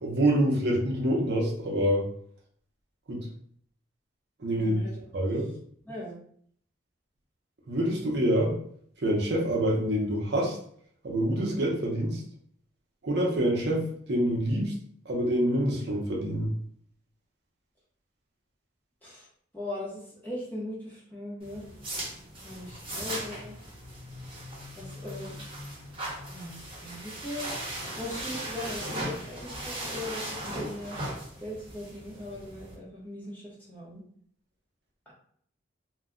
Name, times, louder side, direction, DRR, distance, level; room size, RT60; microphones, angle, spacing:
voice 1, 0.0-2.0 3.1-3.2 4.4-4.8 5.1-5.5 7.7-8.5 9.0-10.6 11.0-12.2 13.0-14.7 15.1-16.5, right 1 dB, 55° right, -2 dB, 0.6 m, -26 dB
voice 2, 4.5-5.0 5.8-6.2 19.0-19.3 19.5-21.6 22.4-23.6 24.8-25.5 26.3-27.5 27.9-31.0 31.4-34.0 35.1-35.2, left 1 dB, 10° left, -6 dB, 0.6 m, -39 dB
sound 1, 21.4-32.7, right 1 dB, 25° right, 1.0 m, -38 dB
2.2 x 2.0 x 3.6 m, 0.62 s
head